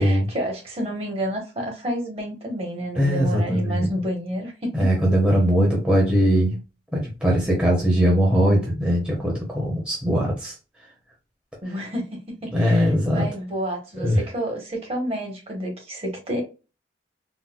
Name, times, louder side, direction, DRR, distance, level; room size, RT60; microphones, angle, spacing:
voice 1, 0.0-4.7 11.6-16.4, right 1 dB, 35° right, 1.1 m, -29 dB
voice 2, 3.0-3.9 4.7-6.6 6.9-10.5 12.5-13.3 14.0-14.2, equal, 5° right, 0.8 m, -20 dB
4.0 x 2.1 x 2.2 m
head